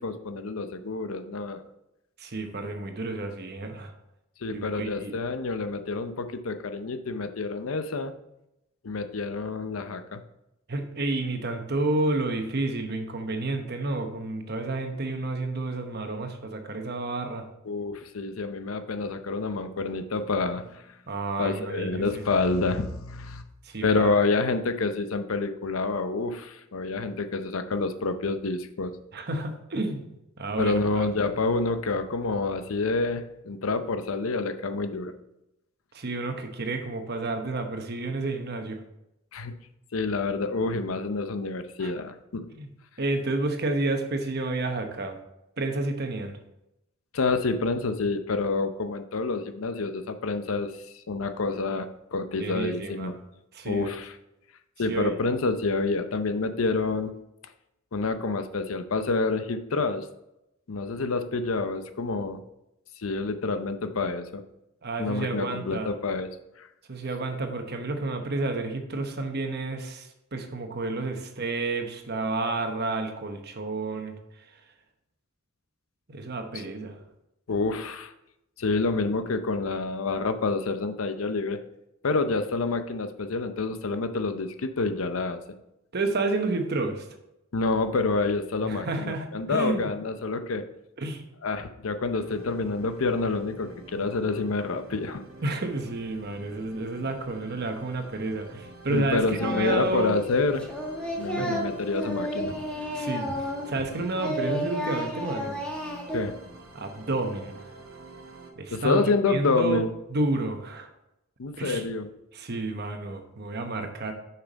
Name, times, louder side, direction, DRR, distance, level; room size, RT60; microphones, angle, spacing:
voice 1, 0.0-1.6 4.4-8.1 8.8-10.2 17.7-21.0 21.4-23.4 23.8-29.0 30.6-35.1 39.3-39.5 39.9-42.5 47.1-53.1 53.7-54.2 54.8-57.1 57.9-60.1 60.7-62.4 63.0-64.4 65.0-66.3 66.6-66.7 76.5-76.6 77.5-78.1 78.6-81.6 82.0-85.4 87.5-90.6 91.4-95.2 98.9-100.6 101.2-102.5 106.1-106.3 108.7-109.9 111.4-112.1, left 3 dB, 90° left, 9 dB, 0.6 m, -28 dB
voice 2, 2.2-3.9 4.5-5.2 10.7-17.5 21.1-22.2 23.6-24.1 29.1-30.1 30.4-31.0 35.9-38.8 41.8-41.9 42.5-42.7 43.0-45.2 45.6-46.4 52.4-53.1 53.5-54.0 54.9-55.1 64.8-65.9 66.9-74.1 76.1-77.0 85.9-87.0 88.6-89.9 91.0-91.2 95.4-100.2 101.4-101.6 102.9-105.5 106.7-107.6 108.6-109.8 110.1-110.9 111.6-111.8 112.3-114.1, right 2 dB, 50° right, 5 dB, 1.0 m, -30 dB
sound 1, 92.2-108.5, right 2 dB, 75° right, 1.2 m, -48 dB
Singing, 99.4-100.0 100.2-103.9 104.2-106.2, equal, 5° left, 1.5 m, -32 dB
6.9 x 5.8 x 4.0 m, 0.86 s
head